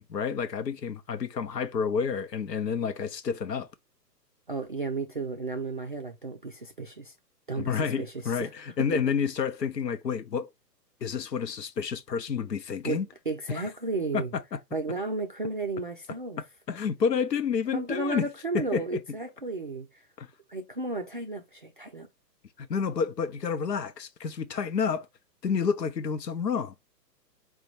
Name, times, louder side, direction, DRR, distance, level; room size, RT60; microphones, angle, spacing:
voice 1, 0.0-3.7 7.6-10.5 11.0-13.1 13.5-13.7 14.1-14.6 16.7-18.3 18.5-18.8 20.2-20.3 22.6-25.1 25.4-26.7, left 6 dB, 75° left, 0.8 m, -29 dB
voice 2, 4.5-7.1 7.5-8.1 8.4-8.5 8.9-9.0 12.8-14.3 14.7-16.4 17.7-20.0 20.5-22.1, right 3 dB, 35° right, 0.4 m, -33 dB
4.7 x 2.2 x 4.0 m
figure-of-eight pair, 120°, 50 cm